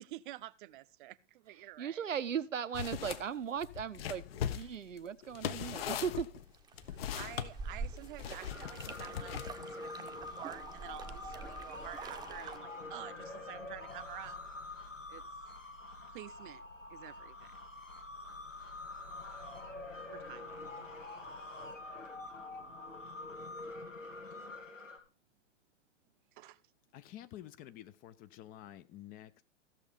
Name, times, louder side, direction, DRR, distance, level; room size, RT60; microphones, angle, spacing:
voice 1, 0.0-2.0 7.1-14.4 15.1-15.2 16.1-16.6 16.9-17.5 20.1-20.7 23.6-23.7 26.3-26.6, right 16 dB, 40° right, 0.8 m, -49 dB
voice 2, 1.8-6.3 20.7-20.9, right 7 dB, 80° right, 0.9 m, -37 dB
sound 1, 2.7-3.2 3.6-7.5 8.2-9.7, left 10 dB, 50° left, 1.1 m, -39 dB
sound 2, 6.5-12.6, right 4 dB, 10° right, 0.8 m, -46 dB
sound 3, 8.5-25.0, left 2 dB, 90° left, 3.0 m, -46 dB
voice 3, 26.9-29.4, left 12 dB, 25° left, 0.6 m, -50 dB
15.0 x 7.0 x 5.1 m
figure-of-eight pair, 110°, 37 cm